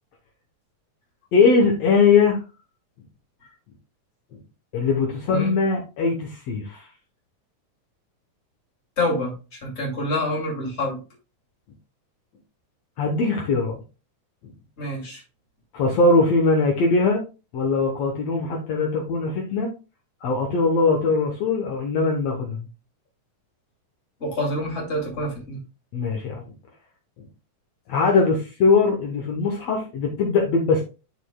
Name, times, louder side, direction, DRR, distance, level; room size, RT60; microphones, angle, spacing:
voice 1, 1.3-2.4 4.7-6.9 13.0-13.8 15.7-17.2 17.5-19.7 20.2-22.7 25.9-26.4 27.9-30.8, left 4 dB, 65° left, 0 dB, 2.0 m, -21 dB
voice 2, 9.0-9.3 9.6-11.0 14.8-15.2 24.2-25.6, left 1 dB, 25° left, -2 dB, 2.3 m, -26 dB
11.5 x 4.5 x 2.2 m, 0.31 s
omnidirectional pair, 3.4 m